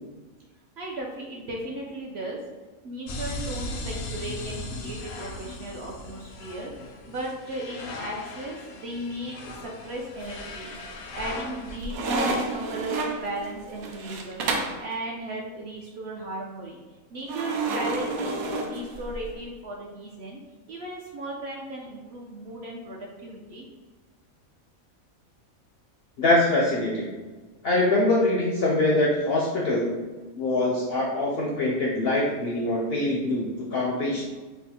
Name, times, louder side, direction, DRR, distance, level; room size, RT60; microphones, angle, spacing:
voice 1, 0.8-2.4 2.8-6.7 7.1-10.7 11.1-16.8 17.1-20.4 20.7-23.7, right 1 dB, 65° right, -2 dB, 0.7 m, -36 dB
sound 1, 3.1-11.8, left 2 dB, 85° left, 1.1 m, -38 dB
sound 2, 10.2-10.7 11.2-14.8 17.3-19.3, right 3 dB, 85° right, 1.1 m, -30 dB
voice 2, 26.2-27.1 27.6-29.9 30.4-34.2, left 2 dB, 65° left, -3 dB, 0.6 m, -23 dB
3.3 x 2.0 x 4.2 m, 1.3 s
omnidirectional pair, 1.5 m